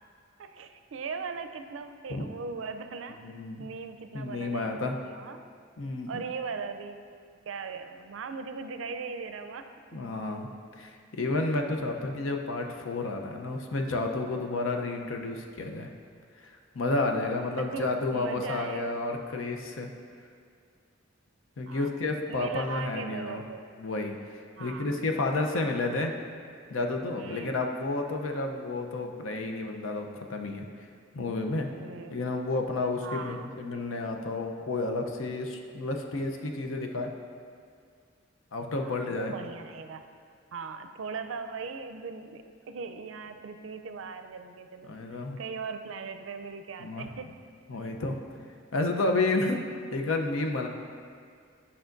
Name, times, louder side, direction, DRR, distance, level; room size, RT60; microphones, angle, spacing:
voice 1, 0.4-3.2 3.6-5.4 6.1-7.0 7.5-9.7 17.6-19.0 21.7-22.0 22.3-23.6 24.6-24.9 27.2-27.7 31.7-32.3 33.0-33.5 38.8-40.0 40.5-47.3, right 5 dB, 75° right, 8 dB, 0.4 m, -39 dB
voice 2, 3.2-3.7 4.1-5.0 5.8-6.2 9.9-10.5 10.8-15.9 16.4-19.9 21.6-23.4 23.8-24.2 24.6-26.1 26.7-30.6 31.1-31.7 32.1-37.1 38.5-39.3 44.9-45.4 46.8-47.0 47.7-48.2 48.7-50.7, left 2 dB, 90° left, 3 dB, 0.6 m, -31 dB
10.5 x 5.6 x 2.5 m, 2.2 s
head